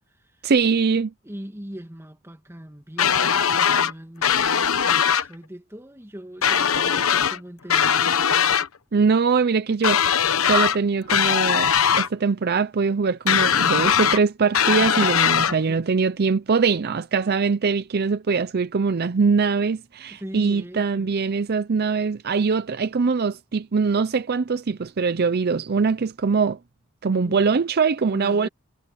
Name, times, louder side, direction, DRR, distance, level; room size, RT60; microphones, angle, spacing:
voice 1, 0.4-1.1 8.9-11.7 12.0-26.6 27.0-28.5, right 5 dB, 50° right, 0.5 m, -22 dB
voice 2, 1.2-8.2 15.5-15.8 20.1-21.1 27.1-27.6 28.0-28.5, equal, 10° right, 2.2 m, -40 dB
sound 1, 3.0-3.9 4.2-5.3 6.4-7.4 7.7-8.7 9.8-10.8 11.1-12.1 13.3-14.2 14.5-15.5, left 8 dB, 85° left, 1.1 m, -20 dB
head